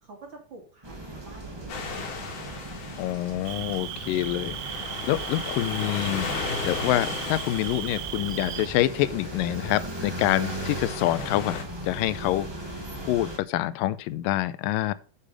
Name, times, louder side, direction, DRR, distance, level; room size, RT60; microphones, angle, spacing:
voice 1, 0.0-2.1, right 3 dB, 40° right, 2.7 m, -48 dB
sound 1, 0.8-13.4, right 1 dB, 20° right, 0.7 m, -38 dB
sound 2, 1.7-11.6, left 4 dB, 65° left, 3.5 m, -36 dB
voice 2, 3.0-14.9, left 14 dB, 90° left, 2.3 m, -27 dB
Cricket, 3.5-8.7, right 16 dB, 85° right, 2.2 m, -37 dB
7.6 x 6.7 x 4.9 m
omnidirectional pair, 3.9 m